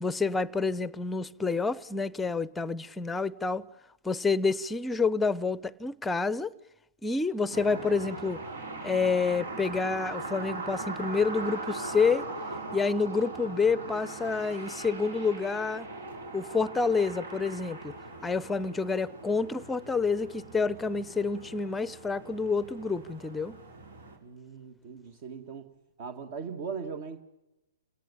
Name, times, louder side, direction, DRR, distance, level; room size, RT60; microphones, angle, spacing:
voice 1, 0.0-3.6 4.0-6.5 7.0-8.4 8.8-12.3 12.7-15.9 16.3-17.9 18.2-23.5, left 4 dB, 10° left, 0.7 m, -28 dB
sound 1, 7.5-24.2, right 2 dB, 75° right, 5.6 m, -40 dB
voice 2, 24.2-25.7 26.0-27.2, right 5 dB, 45° right, 1.8 m, -39 dB
29.5 x 18.0 x 6.9 m
figure-of-eight pair, 120°, 0 cm